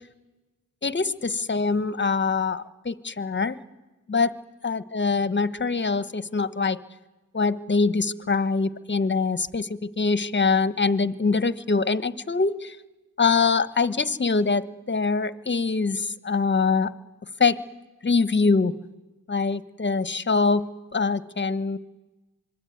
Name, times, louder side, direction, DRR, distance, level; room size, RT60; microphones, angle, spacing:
voice 1, 0.8-3.6 4.1-4.4 4.6-6.8 7.3-12.7 13.2-16.9 17.4-17.6 18.0-18.7 19.3-20.6 20.9-21.8, left 4 dB, 30° left, 15 dB, 1.3 m, -24 dB
26.0 x 22.0 x 9.4 m, 1.1 s
cardioid pair, 75°, 36 cm